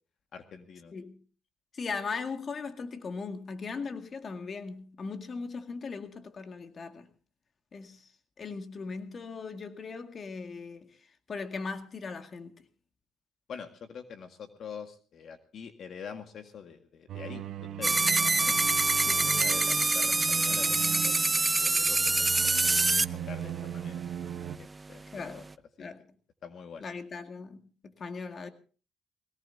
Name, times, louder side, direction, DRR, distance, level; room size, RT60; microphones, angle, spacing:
voice 1, 0.3-1.1 13.5-24.0 24.6-25.4 25.8-25.9 26.4-26.9, left 6 dB, 65° left, 1.8 m, -46 dB
voice 2, 1.7-7.1 7.7-8.1 8.4-11.0 11.3-12.6 19.1-19.3 25.1-25.4 25.8-26.0 26.8-27.6 27.8-28.5, left 4 dB, 45° left, 2.1 m, -38 dB
sound 1, 17.1-24.6, right 10 dB, 70° right, 1.0 m, -38 dB
sound 2, 17.8-23.0, right 3 dB, 20° right, 0.6 m, -25 dB
21.5 x 18.5 x 2.8 m
cardioid pair, 90°, 0 cm